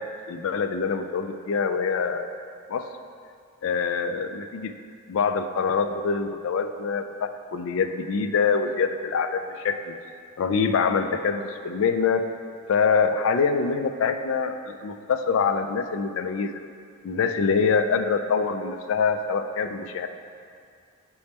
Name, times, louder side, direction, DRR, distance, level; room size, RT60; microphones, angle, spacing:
voice 1, 0.0-2.3 2.7-2.9 3.6-4.7 5.1-9.9 10.4-12.2 12.7-16.5 17.0-20.1, left 5 dB, 65° left, 9 dB, 0.3 m, -25 dB
6.8 x 3.4 x 4.1 m, 2.3 s
head